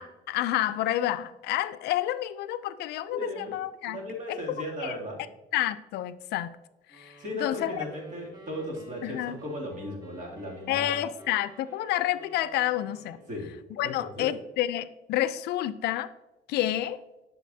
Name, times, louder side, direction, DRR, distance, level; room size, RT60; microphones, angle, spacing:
voice 1, 0.0-4.0 4.3-4.4 4.8-5.0 5.5-6.6 6.9-7.8 9.0-9.4 10.7-13.2 13.7-16.1 16.5-17.0, left 13 dB, 75° left, 14 dB, 0.5 m, -29 dB
voice 2, 3.1-3.6 3.8-5.2 7.2-11.0 13.3-13.5 13.8-14.3, left 1 dB, 50° right, -2 dB, 2.6 m, -36 dB
sound 1, 6.9-13.7, right 2 dB, 20° right, 1.7 m, -52 dB
10.5 x 6.8 x 2.7 m, 0.99 s
cardioid pair, 110°, 17 cm